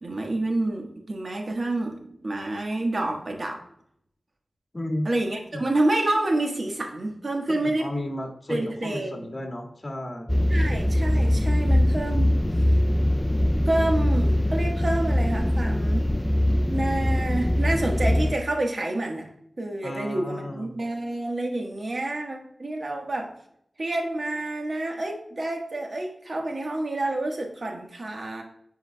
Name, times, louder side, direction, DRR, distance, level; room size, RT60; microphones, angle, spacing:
voice 1, 0.0-3.6 5.0-7.9 8.5-9.3 10.5-12.4 13.6-16.1 16.7-19.3 19.6-23.3 23.8-28.4, right 2 dB, 60° right, 2 dB, 1.4 m, -28 dB
voice 2, 4.7-5.1 5.5-5.6 7.6-10.3 19.8-20.7, left 1 dB, 45° left, 2 dB, 1.7 m, -33 dB
sound 1, 10.3-18.3, left 1 dB, 15° left, 0.3 m, -22 dB
9.8 x 4.6 x 2.3 m, 0.71 s
cardioid pair, 45°, 0 cm